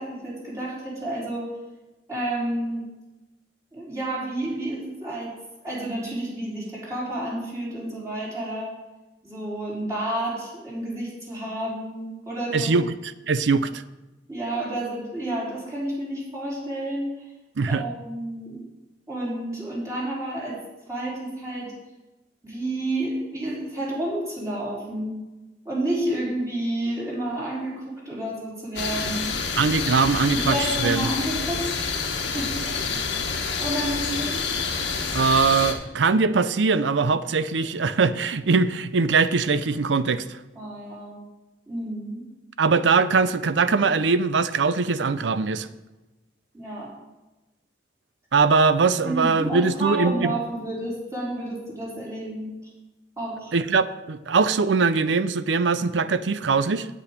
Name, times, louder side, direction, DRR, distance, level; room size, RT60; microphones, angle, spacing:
voice 1, 0.0-1.5 2.1-2.9 3.7-5.3 5.6-8.7 9.2-12.9 14.3-17.1 17.7-18.6 19.1-20.6 20.9-21.7 22.4-25.2 25.7-29.4 29.8-29.9 30.3-31.9 32.3-32.6 33.6-34.5 40.6-41.2 41.7-42.3 46.5-46.9 49.0-52.5 53.2-53.5, right 1 dB, 20° right, -6 dB, 3.7 m, -30 dB
voice 2, 12.5-13.8 17.6-17.8 29.6-31.1 35.1-40.3 42.6-45.7 48.3-50.3 53.5-56.9, right 4 dB, 80° right, 14 dB, 0.6 m, -21 dB
sound 1, 28.8-35.7, left 5 dB, 80° left, 1.3 m, -28 dB
8.6 x 8.5 x 5.2 m, 1.1 s
head